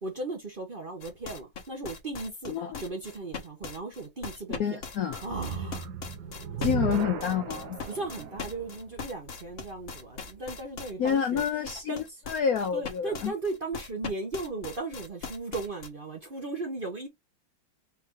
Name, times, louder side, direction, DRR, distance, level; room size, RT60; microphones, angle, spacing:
voice 1, 0.0-2.5 2.8-4.8 5.2-5.8 7.9-11.4 11.9-12.0 12.7-17.1, right 3 dB, 40° right, 0.9 m, -36 dB
sound 1, 1.0-15.9, left 5 dB, 45° left, 0.9 m, -40 dB
voice 2, 2.5-2.8 4.6-5.2 6.6-7.8 11.0-13.3, left 8 dB, 75° left, 0.9 m, -28 dB
sound 2, 5.2-10.5, right 8 dB, 65° right, 1.2 m, -37 dB
4.7 x 2.6 x 3.6 m
omnidirectional pair, 2.0 m